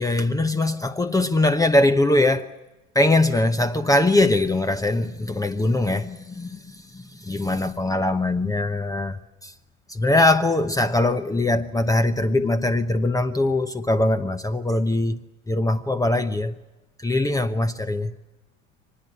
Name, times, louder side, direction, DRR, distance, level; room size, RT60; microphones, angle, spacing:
voice 1, 0.0-2.5 2.9-9.5 9.9-15.2 15.5-16.5 17.0-18.1, left 2 dB, 10° left, 0.9 m, -22 dB
25.0 x 20.0 x 9.9 m
figure-of-eight pair, 75°, 41 cm